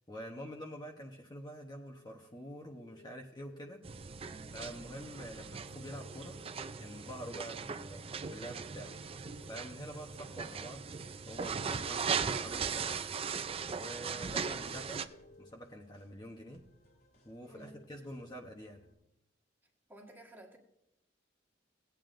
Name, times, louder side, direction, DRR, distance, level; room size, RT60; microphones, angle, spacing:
voice 1, 0.1-3.8 4.5-6.4 6.8-8.9 9.5-10.8 11.3-13.0 13.7-15.0 15.4-16.6 17.2-18.8, equal, 20° left, 1 dB, 0.9 m, -47 dB
sound 1, 2.8-3.8 5.7-6.7 8.7-9.6 11.6-12.6 14.5-15.5 17.5-17.9, left 2 dB, 80° left, 0.5 m, -58 dB
sound 2, 3.8-15.0, right 6 dB, 30° right, 0.4 m, -38 dB
voice 2, 4.2-4.7 14.0-14.4 17.5-17.8 19.9-20.6, right 2 dB, 10° right, 0 dB, 1.5 m, -55 dB
sound 3, 9.3-18.9, equal, 55° left, 2.2 m, -66 dB
17.5 x 9.1 x 2.5 m, 0.84 s
head